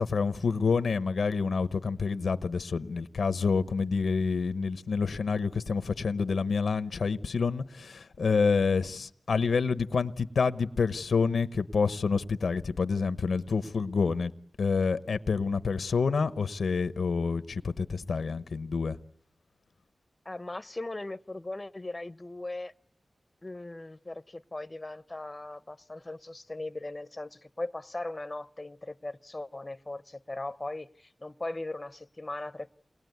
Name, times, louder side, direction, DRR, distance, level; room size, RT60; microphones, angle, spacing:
voice 1, 0.0-14.3 14.6-19.0, left 5 dB, 80° left, 1.0 m, -28 dB
voice 2, 20.2-22.7 23.4-32.7, left 2 dB, 30° left, 1.0 m, -39 dB
28.5 x 20.5 x 9.4 m
cardioid pair, 45°, 0 cm